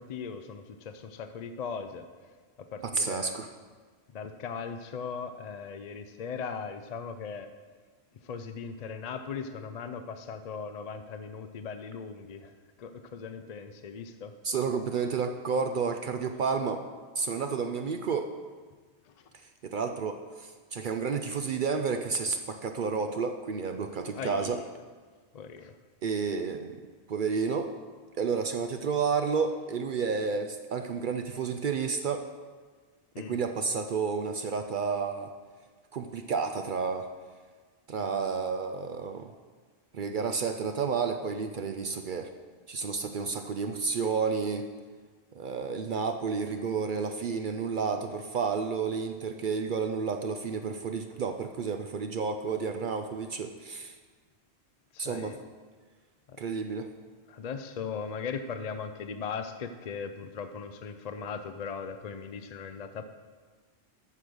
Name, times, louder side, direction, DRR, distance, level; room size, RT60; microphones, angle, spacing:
voice 1, 0.0-2.1 2.6-3.4 4.1-7.5 8.2-12.5 12.8-14.4 19.0-19.3 24.2-24.7 25.3-25.8 33.1-33.4 38.0-38.5 54.9-55.4 56.3-56.4 57.3-63.0, left 6 dB, 55° left, 9 dB, 0.5 m, -39 dB
voice 2, 2.8-3.5 14.4-16.8 17.2-18.3 19.6-24.6 26.0-26.8 27.1-27.7 28.2-32.3 33.2-35.3 35.9-37.1 37.9-39.3 39.9-42.3 42.7-44.7 45.3-53.9 55.0-55.3 56.4-56.9, right 5 dB, 55° right, 7 dB, 0.6 m, -31 dB
8.4 x 6.7 x 6.2 m, 1.5 s
omnidirectional pair, 1.1 m